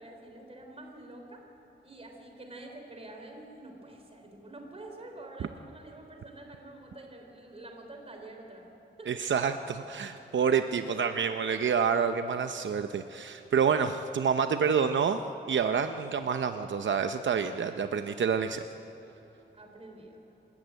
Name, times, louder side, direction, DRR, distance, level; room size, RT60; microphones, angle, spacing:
voice 1, 0.0-1.4 1.8-8.7 9.0-9.1 16.1-16.2 19.5-20.2, right 2 dB, 30° right, 3 dB, 3.4 m, -47 dB
voice 2, 9.1-15.2 15.5-18.6, right 6 dB, 80° right, 8 dB, 0.7 m, -28 dB
27.0 x 13.5 x 9.1 m, 3.0 s
wide cardioid pair, 175°, 19 cm